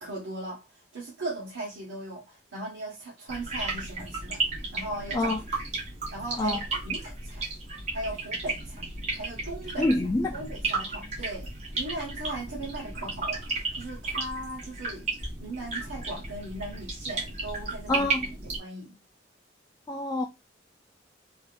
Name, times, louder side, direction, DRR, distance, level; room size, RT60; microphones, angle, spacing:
voice 1, 0.0-0.6 0.9-4.4 4.7-5.6 6.1-7.5 7.9-8.9 9.1-9.9 10.3-15.1 15.4-18.1 18.6-19.0, right 1 dB, 90° right, 1.1 m, -38 dB
sound 1, 3.3-18.6, right 3 dB, 40° right, 1.5 m, -34 dB
voice 2, 9.8-10.3 17.9-18.3 19.9-20.2, left 2 dB, 20° left, 0.3 m, -26 dB
3.4 x 2.8 x 2.4 m
head